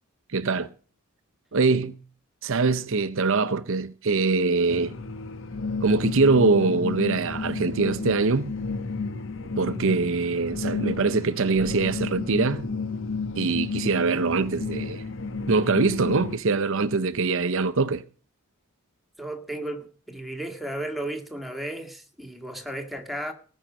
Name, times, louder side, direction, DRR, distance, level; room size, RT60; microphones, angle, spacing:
voice 1, 0.3-0.7 1.5-2.0 2.4-4.9 5.8-8.5 9.6-12.6 13.4-15.0 15.5-18.0, right 4 dB, 65° right, 0.7 m, -23 dB
sound 1, 4.7-16.4, left 4 dB, 60° left, 1.2 m, -32 dB
voice 2, 19.2-23.3, right 1 dB, ahead, 2.2 m, -34 dB
18.5 x 6.4 x 7.5 m
head